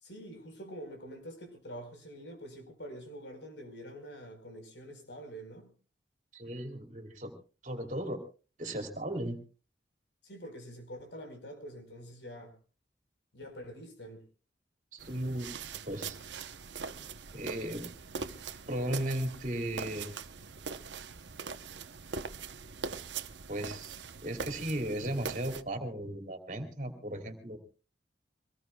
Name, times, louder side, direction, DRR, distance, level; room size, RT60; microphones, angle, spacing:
voice 1, 0.0-5.7 10.2-12.5 13.3-14.2, equal, 80° left, 4.5 m, -46 dB
voice 2, 6.3-7.3 7.6-8.2 8.6-9.4 14.9-15.5 15.9-16.2 17.3-17.9 18.7-20.1 23.5-24.0 24.2-27.6, right 1 dB, 45° right, 2.8 m, -36 dB
sound 1, 15.0-25.6, right 5 dB, 85° right, 0.9 m, -42 dB
25.0 x 19.0 x 2.3 m
head